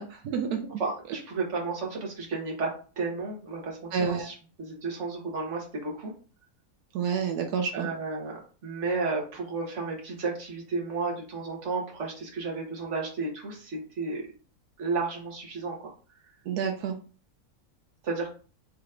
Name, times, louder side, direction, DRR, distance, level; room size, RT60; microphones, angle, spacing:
voice 1, 0.0-0.7 3.9-4.3 6.9-7.9 16.5-17.0, right 6 dB, 85° right, 4 dB, 1.3 m, -29 dB
voice 2, 0.8-2.7 3.0-6.1 7.7-14.2 14.8-15.9 18.0-18.3, right 4 dB, 50° right, -1 dB, 1.6 m, -32 dB
4.5 x 3.0 x 3.6 m, 0.38 s
omnidirectional pair, 1.6 m